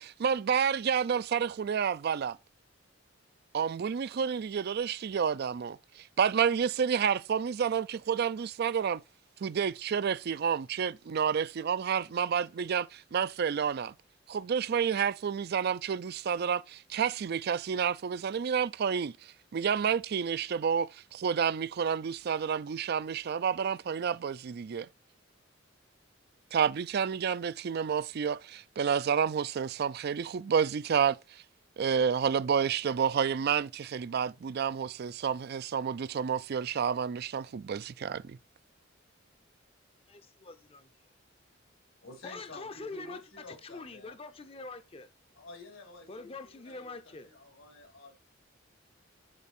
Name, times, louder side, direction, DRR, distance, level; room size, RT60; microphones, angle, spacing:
voice 1, 0.0-2.4 3.5-9.0 9.4-13.9 14.3-24.9 26.5-31.4 31.8-38.4, right 7 dB, 55° right, 0.4 m, -30 dB
voice 2, 40.1-40.9 42.2-45.1 46.1-47.3, left 3 dB, 30° left, 0.6 m, -44 dB
voice 3, 42.0-44.2 45.3-46.2 46.5-48.1, left 2 dB, 90° left, 3.2 m, -50 dB
11.0 x 4.0 x 4.2 m
head